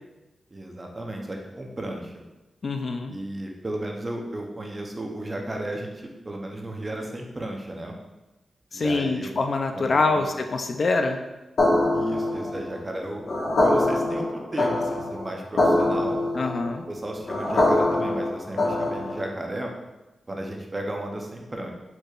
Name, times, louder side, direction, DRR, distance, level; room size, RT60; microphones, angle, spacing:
voice 1, 0.5-2.1 3.1-8.0 8.7-9.3 9.7-10.2 11.9-13.2 13.6-16.2 16.9-19.7 20.3-21.7, right 1 dB, 25° right, 1 dB, 0.6 m, -34 dB
voice 2, 2.6-3.1 8.7-11.2 16.3-16.8, left 3 dB, 50° left, 5 dB, 0.3 m, -25 dB
sound 1, 11.6-19.4, left 2 dB, 65° left, 1.2 m, -24 dB
4.7 x 4.5 x 2.4 m, 1.0 s
wide cardioid pair, 145°, 0 cm